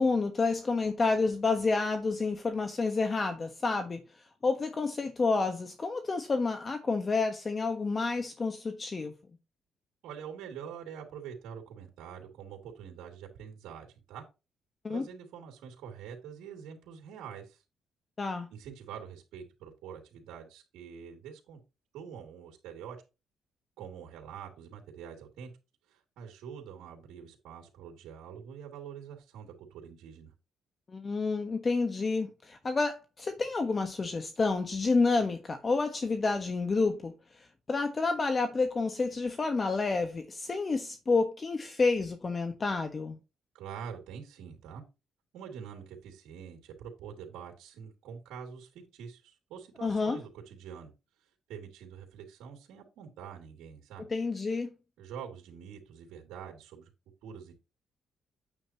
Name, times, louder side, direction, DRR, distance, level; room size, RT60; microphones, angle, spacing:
voice 1, 0.0-4.0 4.4-9.1 14.8-15.1 18.2-18.5 30.9-37.2 37.7-43.2 49.8-50.2 54.1-54.7, left 3 dB, 35° left, 1.3 m, -29 dB
voice 2, 10.0-14.2 14.9-17.6 18.5-21.6 21.9-23.0 23.8-25.5 25.9-30.3 43.5-44.8 45.3-50.9 51.5-54.1 55.0-56.9 57.2-57.5, right 7 dB, 90° right, 2.7 m, -45 dB
9.1 x 7.7 x 3.0 m
cardioid pair, 90°, 0 cm